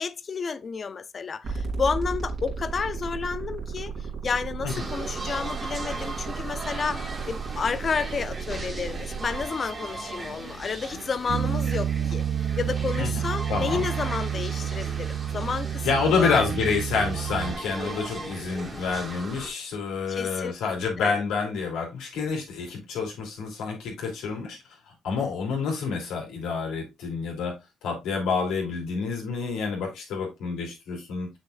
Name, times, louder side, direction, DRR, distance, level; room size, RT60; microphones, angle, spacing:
voice 1, 0.0-16.5 20.1-20.5 21.0-21.2, left 5 dB, 45° left, 0.6 m, -31 dB
sound 1, 1.4-9.4, right 5 dB, 55° right, 2.6 m, -34 dB
sound 2, 4.7-19.5, right 2 dB, 30° right, 2.3 m, -38 dB
Bass guitar, 11.3-17.5, right 9 dB, 75° right, 0.5 m, -29 dB
voice 2, 13.5-13.9 15.8-24.6 24.9-27.5 27.8-31.3, left 5 dB, 90° left, 3.0 m, -28 dB
6.9 x 6.4 x 2.4 m
cardioid pair, 90°, 0 cm